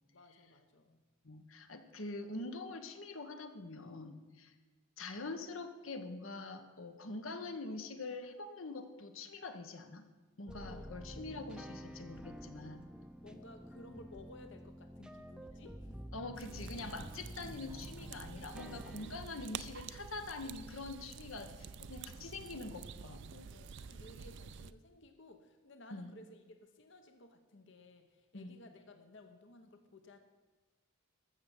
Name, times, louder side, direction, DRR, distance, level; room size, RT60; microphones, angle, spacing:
voice 1, 0.1-1.0 10.6-11.7 13.2-16.1 17.2-17.3 18.6-19.3 23.5-30.2, left 2 dB, 60° left, 7 dB, 1.0 m, -57 dB
voice 2, 1.2-4.5 5.0-10.1 10.4-12.8 16.1-23.5 25.9-26.1 28.3-28.5, left 3 dB, 80° left, 8 dB, 1.3 m, -45 dB
sound 1, 10.5-19.2, equal, 5° right, 0.5 m, -49 dB
sound 2, 16.3-24.7, right 6 dB, 60° right, 0.4 m, -49 dB
13.5 x 6.8 x 7.8 m, 1.3 s
head